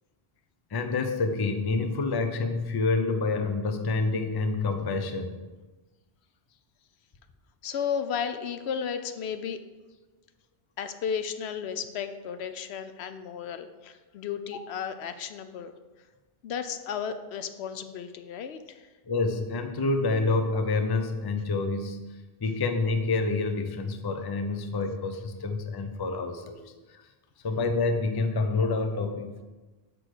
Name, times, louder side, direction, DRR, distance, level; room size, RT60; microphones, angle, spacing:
voice 1, 0.7-5.3 19.1-22.0 22.4-26.6 26.9-27.0 27.4-29.4, left 3 dB, 30° left, 7 dB, 0.5 m, -27 dB
voice 2, 7.6-9.6 10.8-15.7 16.4-18.9, left 7 dB, 80° left, 10 dB, 0.8 m, -34 dB
6.2 x 4.6 x 6.4 m, 1.2 s
omnidirectional pair, 1.1 m